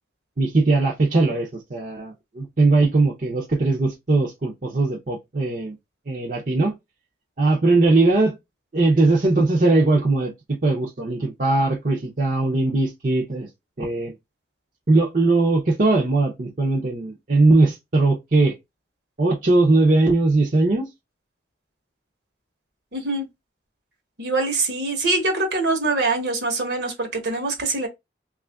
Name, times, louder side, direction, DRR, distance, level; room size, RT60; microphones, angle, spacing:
voice 1, 0.4-5.7 6.1-6.7 7.4-8.4 8.7-13.5 13.8-14.1 14.9-18.5 19.2-20.9, right 2 dB, 45° right, 0.7 m, -20 dB
voice 2, 22.9-23.2 24.2-27.9, right 3 dB, 65° right, 1.0 m, -24 dB
3.2 x 2.4 x 3.4 m
head